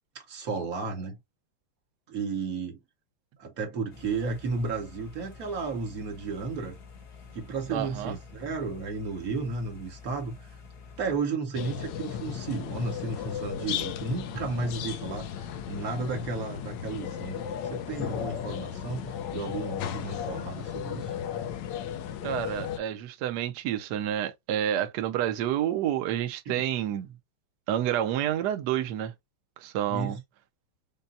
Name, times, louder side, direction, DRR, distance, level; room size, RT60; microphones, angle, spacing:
voice 1, 0.3-1.2 2.1-2.8 3.4-6.8 7.3-10.5 11.0-21.1 26.4-26.6 29.9-30.2, right 4 dB, 50° right, 1.6 m, -33 dB
sound 1, 3.9-11.2, left 5 dB, 55° left, 1.8 m, -48 dB
voice 2, 7.7-8.2 22.2-27.1 27.7-29.1 29.6-30.2, right 11 dB, 65° right, 1.1 m, -29 dB
sound 2, 11.5-22.8, left 9 dB, 70° left, 1.2 m, -35 dB
5.4 x 2.2 x 2.6 m
omnidirectional pair, 2.2 m